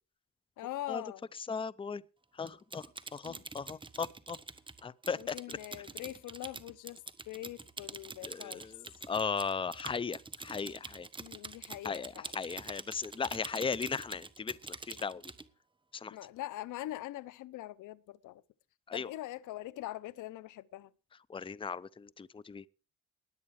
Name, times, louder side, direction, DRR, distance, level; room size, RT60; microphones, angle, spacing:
voice 1, 0.6-1.2 3.2-3.4 5.1-8.7 11.2-12.3 16.1-18.4 18.9-20.9, left 15 dB, 85° left, 0.7 m, -43 dB
voice 2, 1.5-2.0 2.3-2.9 3.1-4.4 4.8-5.4 8.2-11.1 11.8-15.2 15.9-16.2 18.9-19.1 21.3-22.6, left 5 dB, 15° left, 0.6 m, -37 dB
Typing, 2.5-15.5, right 3 dB, 15° right, 1.1 m, -46 dB
19.5 x 8.5 x 4.9 m
cardioid pair, 90°, 30 cm